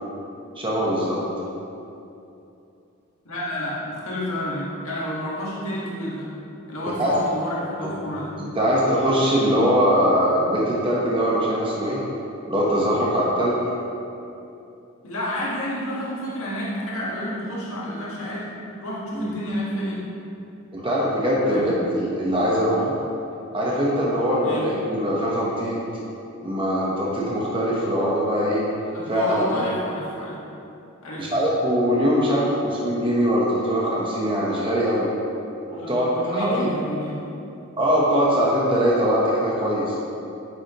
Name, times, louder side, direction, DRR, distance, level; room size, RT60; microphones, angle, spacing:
voice 1, 0.6-1.2 7.0-7.1 7.8-8.0 8.4-12.0 12.5-13.6 19.1-19.3 20.7-22.9 23.5-25.8 26.4-28.7 29.1-29.6 31.2-35.1 35.7-36.7 37.8-40.0, equal, 25° right, -5 dB, 1.2 m, -22 dB
voice 2, 3.3-6.3 6.7-8.4 15.0-18.5 18.8-20.0 21.5-21.6 24.4-24.7 28.9-30.4 31.0-31.3 35.8-37.2, equal, 80° left, -7 dB, 1.8 m, -29 dB
9.8 x 7.4 x 3.1 m, 2.8 s
head